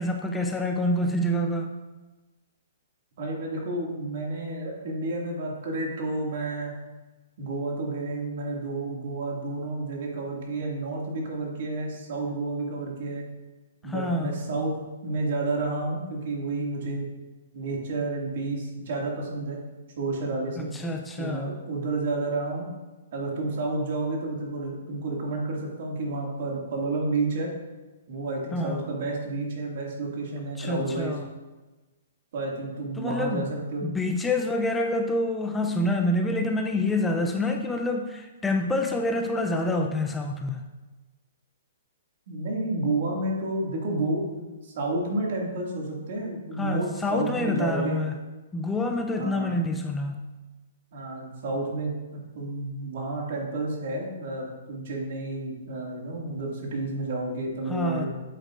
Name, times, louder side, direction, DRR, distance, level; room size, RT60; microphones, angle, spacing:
voice 1, 0.0-1.7 13.8-14.3 20.6-21.6 28.5-28.8 30.6-31.3 33.0-33.5 33.8-40.6 46.6-48.1 48.5-50.2 57.7-58.1, left 1 dB, 10° left, 3 dB, 0.5 m, -27 dB
voice 2, 3.2-6.7 7.4-13.2 13.8-14.8 15.0-17.1 17.5-19.6 20.0-20.7 21.2-22.7 23.1-27.5 28.1-31.1 32.3-33.9 42.3-48.0 49.2-49.6 50.9-58.1, right 2 dB, 60° right, -1 dB, 2.2 m, -30 dB
8.4 x 8.0 x 2.5 m, 1.2 s
hypercardioid pair, 140°, 0 cm